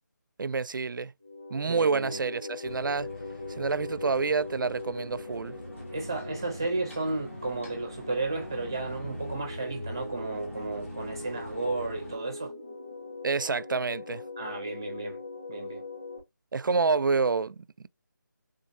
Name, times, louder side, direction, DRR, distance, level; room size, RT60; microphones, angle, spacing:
voice 1, 0.4-1.1 1.5-3.1 3.5-5.6 13.2-14.2 16.5-17.6, right 4 dB, 85° right, 0.4 m, -28 dB
sound 1, 1.2-16.2, left 3 dB, 15° left, 1.7 m, -41 dB
voice 2, 1.7-2.2 5.9-12.5 14.4-15.2 15.5-15.8, right 3 dB, 15° right, 0.6 m, -33 dB
sound 2, 2.6-12.2, left 1 dB, 40° left, 1.9 m, -44 dB
3.9 x 3.8 x 2.6 m
figure-of-eight pair, 180°, 10 cm